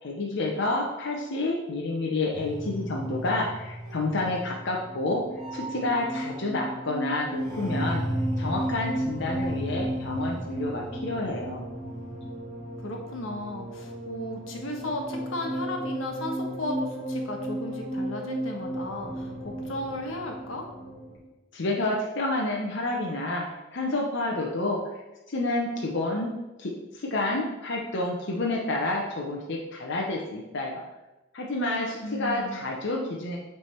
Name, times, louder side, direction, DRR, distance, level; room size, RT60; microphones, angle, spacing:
voice 1, 0.0-5.2 5.5-8.0 8.4-11.6 21.5-23.4 23.7-24.8 25.3-26.3 26.6-30.8 31.3-33.4, left 2 dB, 60° left, -2 dB, 0.8 m, -29 dB
sound 1, 2.3-21.2, right 1 dB, 5° left, 2.3 m, -34 dB
voice 2, 12.8-20.7 32.0-32.6, left 1 dB, 85° left, 1 dB, 1.2 m, -35 dB
8.3 x 3.4 x 4.4 m, 1.0 s
head